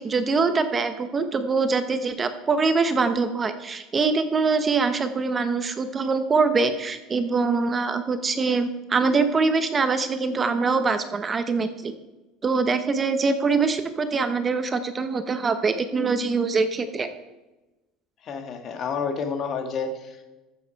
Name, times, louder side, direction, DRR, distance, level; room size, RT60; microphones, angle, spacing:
voice 1, 0.0-11.9 12.4-17.1, right 4 dB, 25° right, 10 dB, 0.8 m, -23 dB
voice 2, 18.2-20.3, left 5 dB, 40° left, 6 dB, 1.8 m, -30 dB
14.0 x 7.6 x 4.6 m, 1.1 s
supercardioid pair, 125°, 0 cm